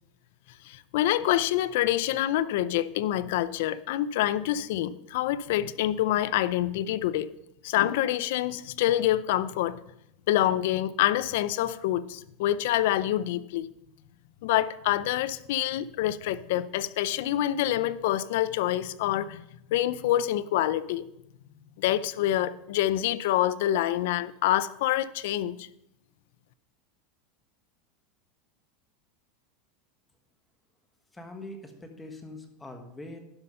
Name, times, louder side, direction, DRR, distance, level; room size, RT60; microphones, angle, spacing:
voice 1, 0.7-7.3 7.6-9.8 10.3-13.7 14.4-19.4 19.7-21.0 21.8-25.6, left 13 dB, 70° left, 0.5 m, -26 dB
voice 2, 31.1-33.2, left 1 dB, 10° left, 1.3 m, -43 dB
11.5 x 5.7 x 5.3 m
supercardioid pair, 145°, 0 cm